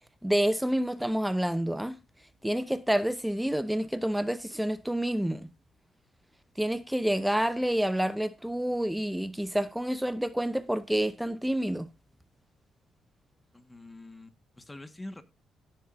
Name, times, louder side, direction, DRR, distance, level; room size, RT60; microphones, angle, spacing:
voice 1, 0.2-2.0 2.4-5.5 6.6-11.9, right 1 dB, 5° right, 0.7 m, -28 dB
voice 2, 13.5-15.2, left 1 dB, 15° left, 1.6 m, -45 dB
17.0 x 7.4 x 2.6 m
cardioid pair, 90°, 0 cm